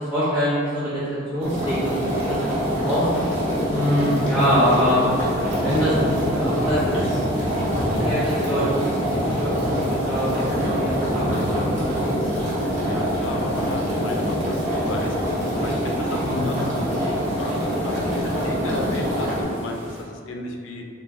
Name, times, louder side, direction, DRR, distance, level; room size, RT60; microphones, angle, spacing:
voice 1, 0.1-0.9 1.3-2.3 2.7-3.1 3.7-5.0 5.6-7.2 8.0-9.2 9.4-12.1 16.2-16.6, equal, ahead, -12 dB, 0.7 m, -24 dB
sound 1, 1.4-19.4, equal, 35° right, 0.9 m, -25 dB
sound 2, 1.5-20.0, equal, 90° right, 1.0 m, -33 dB
voice 2, 3.7-4.1 12.9-14.6 14.9-20.8, left 2 dB, 70° left, 2 dB, 0.4 m, -35 dB
3.8 x 2.5 x 2.5 m, 2.3 s
head